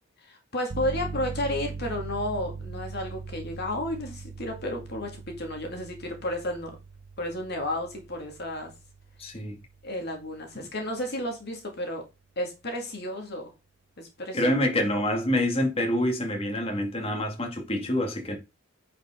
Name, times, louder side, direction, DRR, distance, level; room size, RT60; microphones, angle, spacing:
voice 1, 0.2-6.8 7.2-8.7 9.8-12.0 12.4-13.5 14.0-14.4, left 1 dB, 50° left, 2.1 m, -32 dB
sound 1, 0.7-11.2, right 4 dB, 55° right, 0.7 m, -41 dB
voice 2, 9.2-9.6 10.6-10.7 14.3-18.4, left 1 dB, 30° left, 2.3 m, -26 dB
10.0 x 5.1 x 3.7 m
head